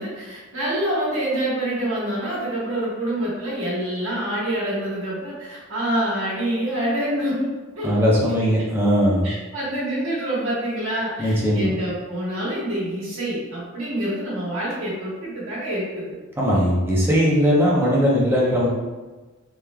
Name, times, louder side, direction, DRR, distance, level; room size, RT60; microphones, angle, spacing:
voice 1, 0.0-7.5 7.7-8.0 8.4-8.5 9.2-16.1, right 1 dB, 85° right, -7 dB, 1.4 m, -26 dB
voice 2, 7.8-9.3 11.2-11.7 16.4-18.7, equal, 10° right, -5 dB, 0.7 m, -19 dB
3.5 x 3.1 x 2.2 m, 1.3 s
head